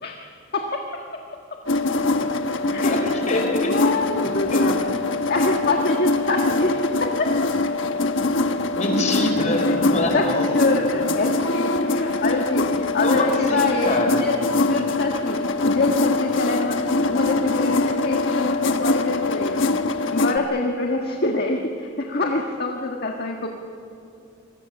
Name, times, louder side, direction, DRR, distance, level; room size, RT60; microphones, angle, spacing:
voice 1, 0.5-0.9 2.6-3.1 3.6-4.9 5.3-7.5 10.1-19.6 20.1-23.5, left 2 dB, 55° left, 1 dB, 1.6 m, -25 dB
sound 1, 1.7-20.4, left 3 dB, 75° left, 1.2 m, -23 dB
voice 2, 2.8-3.7 4.5-4.7 8.7-10.5 13.0-14.2, left 1 dB, 40° left, 3 dB, 4.7 m, -24 dB
25.5 x 21.5 x 7.3 m, 2.6 s
head